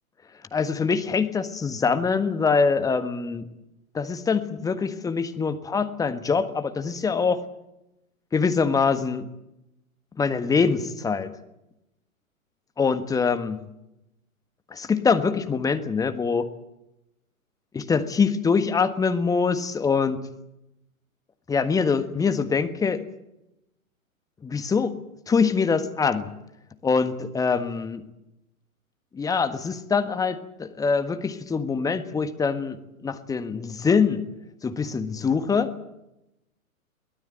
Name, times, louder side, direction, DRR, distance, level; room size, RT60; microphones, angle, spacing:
voice 1, 0.5-3.5 3.9-7.4 8.3-9.3 10.2-11.3 12.8-13.6 14.7-16.5 17.7-20.2 21.5-23.0 24.4-24.9 25.3-26.3 26.8-28.0 29.1-32.8 33.0-34.2 34.6-35.7, left 5 dB, 10° left, 10 dB, 1.4 m, -24 dB
23.0 x 18.0 x 9.2 m, 0.89 s
figure-of-eight pair, 110°, 42 cm